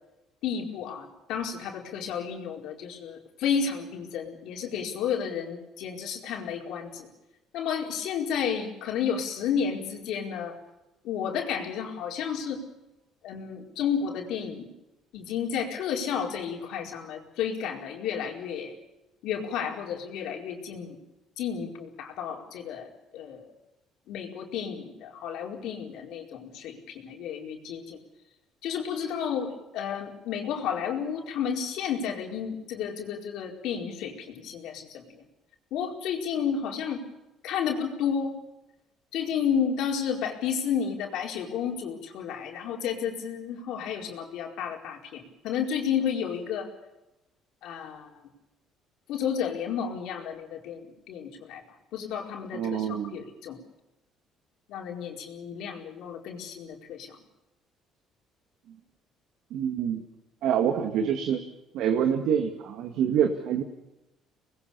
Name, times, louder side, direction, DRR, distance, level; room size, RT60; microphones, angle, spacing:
voice 1, 0.4-7.1 7.5-10.5 11.0-12.6 13.2-14.7 15.1-18.7 19.2-21.0 21.4-23.5 24.1-28.0 28.6-35.2 35.7-37.0 37.4-38.3 39.1-46.7 47.6-48.2 49.1-51.6 51.9-53.6 54.7-57.2, left 7 dB, 75° left, 2 dB, 4.7 m, -32 dB
voice 2, 52.5-53.2 59.5-60.0 60.4-61.4 61.7-63.6, right 8 dB, 75° right, 5 dB, 2.1 m, -26 dB
26.5 x 20.5 x 7.0 m, 0.97 s
cardioid pair, 110°, 0 cm